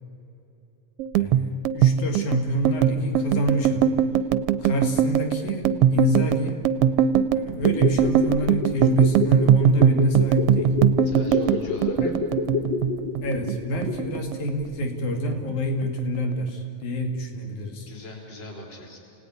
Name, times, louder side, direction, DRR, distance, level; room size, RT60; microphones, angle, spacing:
sound 1, 1.0-13.6 13.8-14.9 15.2-15.5 15.8-16.5, right 8 dB, 70° right, 1.5 m, -21 dB
voice 1, 1.2-4.0 4.6-6.6 7.3-10.8 12.0-12.2 13.2-17.9, equal, 80° left, 3 dB, 3.8 m, -28 dB
sound 2, 7.4-14.3 14.6-14.7, left 3 dB, 10° left, 1.3 m, -29 dB
voice 2, 11.0-12.1 17.9-19.0, left 2 dB, 35° left, 0 dB, 4.4 m, -38 dB
29.0 x 18.5 x 9.9 m, 2.9 s
omnidirectional pair, 3.3 m